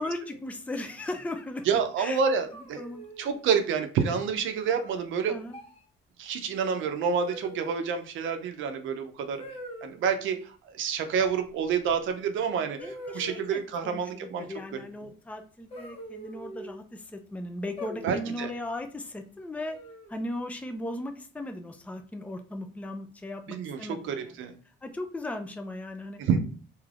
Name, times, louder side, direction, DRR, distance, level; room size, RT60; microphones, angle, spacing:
voice 1, 0.0-2.2 2.8-3.0 5.3-5.6 12.8-19.8 20.1-24.4 24.8-26.2, left 1 dB, 5° left, 5 dB, 0.4 m, -37 dB
voice 2, 1.6-2.8 3.2-5.4 6.2-9.4 9.8-14.5 18.0-18.5 23.5-24.5 26.2-26.4, right 6 dB, 80° right, 7 dB, 0.6 m, -28 dB
sound 1, 2.5-3.4 4.6-5.0 5.5-5.8 7.3-7.9 9.4-10.0 11.9-12.0 12.8-13.8 15.7-16.8 17.8-18.4 19.6-20.2, equal, 30° left, 0.8 m, -43 dB
3.2 x 2.7 x 2.4 m, 0.42 s
cardioid pair, 90°, 20 cm